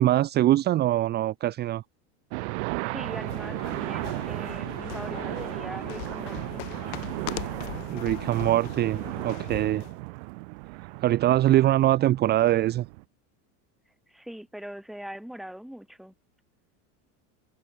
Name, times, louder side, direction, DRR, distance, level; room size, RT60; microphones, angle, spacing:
voice 1, 0.0-1.8 7.9-9.9 11.0-12.9, right 14 dB, 25° right, 1.1 m, -23 dB
sound 1, 2.3-13.0, right 29 dB, 55° right, 2.2 m, -35 dB
sound 2, 2.8-10.0, left 24 dB, 65° left, 2.1 m, -40 dB
voice 2, 2.8-6.6 14.1-16.1, equal, ahead, 2.0 m, -41 dB
cardioid pair, 175°, 40 cm